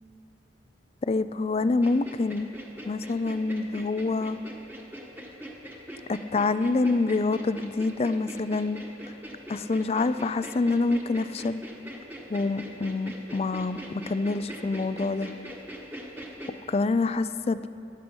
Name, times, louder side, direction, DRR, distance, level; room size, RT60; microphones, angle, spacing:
voice 1, 1.0-2.5 2.8-4.4 6.1-8.8 9.5-11.6 12.3-15.3 16.7-17.7, left 3 dB, 35° left, 13 dB, 0.4 m, -26 dB
sound 1, 1.8-16.5, equal, 10° right, 1.3 m, -42 dB
15.5 x 12.0 x 5.4 m, 2.6 s
head